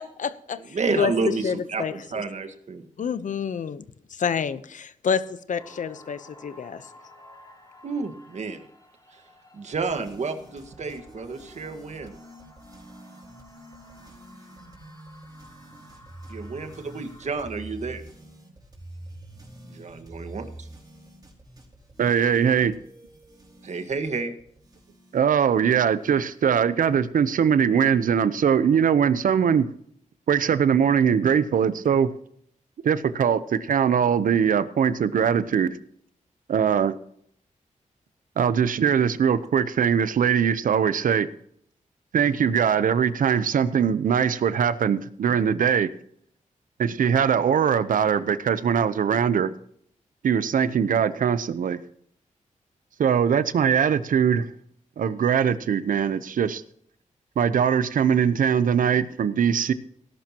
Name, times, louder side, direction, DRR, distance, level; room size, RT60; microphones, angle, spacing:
voice 1, 0.0-2.2 3.0-3.8 4.1-6.8, left 6 dB, 70° left, 13 dB, 0.9 m, -29 dB
voice 2, 0.7-2.9 7.8-8.6 9.1-9.2 9.5-12.1 16.3-18.0 19.6-20.7 23.6-24.3, right 4 dB, 60° right, 7 dB, 1.7 m, -30 dB
sound 1, 5.6-17.4, left 1 dB, 30° left, 4.7 m, -52 dB
sound 2, 9.7-26.9, right 1 dB, 30° right, 4.9 m, -47 dB
voice 3, 22.0-22.8 25.1-29.7 30.3-32.1 32.8-35.8 36.5-36.9 38.4-41.3 42.1-45.9 46.8-49.5 50.2-51.8 53.0-54.5 55.0-56.6 57.4-59.7, right 7 dB, 85° right, 14 dB, 0.8 m, -21 dB
18.0 x 11.5 x 3.0 m, 0.67 s
wide cardioid pair, 115°, 13 cm